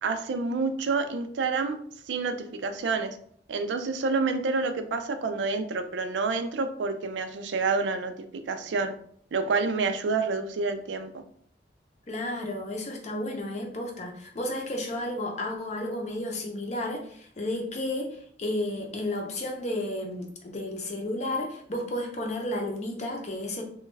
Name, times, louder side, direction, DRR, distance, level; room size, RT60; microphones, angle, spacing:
voice 1, 0.0-1.8 2.1-3.2 3.5-8.1 8.5-8.9 9.3-11.2, right 4 dB, 85° right, 8 dB, 0.4 m, -28 dB
voice 2, 12.1-23.6, left 1 dB, 40° left, 1 dB, 0.6 m, -32 dB
3.1 x 2.3 x 3.2 m, 0.62 s
head